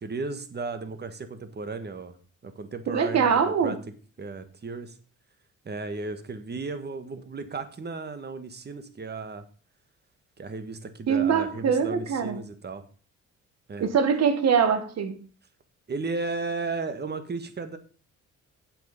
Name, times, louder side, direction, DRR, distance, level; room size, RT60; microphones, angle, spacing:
voice 1, 0.0-2.2 2.4-5.0 5.6-9.4 10.4-12.8 13.7-13.9 15.9-17.8, right 3 dB, 35° right, 9 dB, 1.6 m, -35 dB
voice 2, 2.9-3.7 11.1-12.4 13.8-15.2, right 6 dB, 60° right, 9 dB, 1.6 m, -23 dB
9.2 x 7.7 x 5.3 m, 0.39 s
cardioid pair, 90°, 30 cm